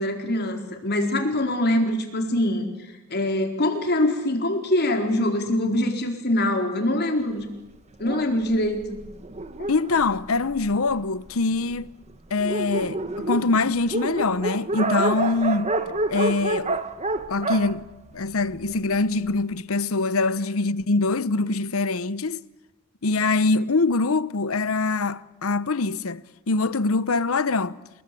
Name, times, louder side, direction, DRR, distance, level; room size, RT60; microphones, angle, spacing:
voice 1, 0.0-7.5 8.0-8.8, left 1 dB, 50° left, 4.3 m, -24 dB
Dog, 8.0-11.0 11.7-11.8 12.1-12.2 12.4-18.8, right 2 dB, 30° right, 1.4 m, -29 dB
voice 2, 9.7-11.9 12.3-15.7 16.1-16.8 17.3-17.9 18.1-22.4 23.0-26.2 26.5-27.8, left 3 dB, 90° left, 0.9 m, -24 dB
28.0 x 21.5 x 8.5 m
head